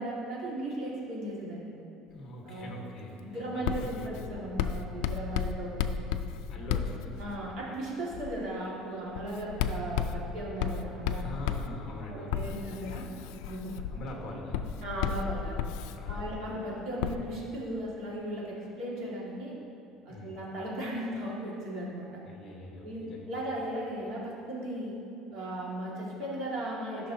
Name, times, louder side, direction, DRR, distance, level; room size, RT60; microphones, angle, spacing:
voice 1, 0.0-1.7 2.5-2.7 3.2-6.1 7.2-11.3 12.1-13.0 13.5-13.8 14.8-15.6 16.1-19.5 20.1-22.1 22.8-24.9 25.3-27.1, right 1 dB, 50° right, -5 dB, 1.8 m, -36 dB
voice 2, 2.1-4.2 6.5-7.3 11.1-12.8 13.7-14.8 15.9-16.5 20.1-20.4 22.2-23.3, left 1 dB, 30° left, -1 dB, 1.3 m, -43 dB
Writing, 3.7-7.6 8.1-8.5 9.2-16.5 17.0-17.2, left 8 dB, 75° left, 0.3 m, -34 dB
13.0 x 5.9 x 2.7 m, 2.6 s
cardioid pair, 170°, 0 cm